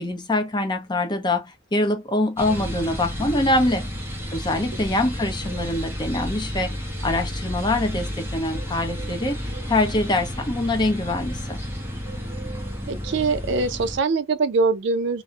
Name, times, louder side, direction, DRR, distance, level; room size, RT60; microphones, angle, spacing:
voice 1, 0.0-3.9 4.3-9.4 9.7-11.6, left 2 dB, 25° left, 0.6 m, -24 dB
sound 1, 2.4-14.0, equal, 10° right, 0.7 m, -31 dB
voice 2, 12.9-15.2, right 4 dB, 65° right, 0.4 m, -23 dB
2.3 x 2.0 x 2.7 m
head